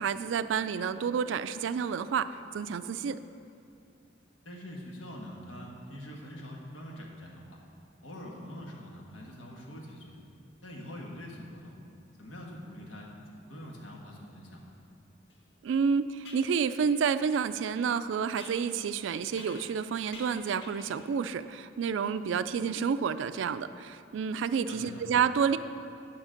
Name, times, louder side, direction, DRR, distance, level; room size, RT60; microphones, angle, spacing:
voice 1, 0.0-2.3 2.5-3.2 15.6-25.6, right 6 dB, 75° right, 13 dB, 0.3 m, -29 dB
voice 2, 4.4-7.6 8.0-10.1 10.6-11.7 12.2-14.7 24.7-25.0, equal, 90° left, -1 dB, 1.5 m, -44 dB
sound 1, 15.3-15.4 16.2-16.5 18.4-19.8 20.1-21.0, left 2 dB, 70° left, 1.3 m, -49 dB
9.9 x 6.0 x 5.1 m, 2.4 s
head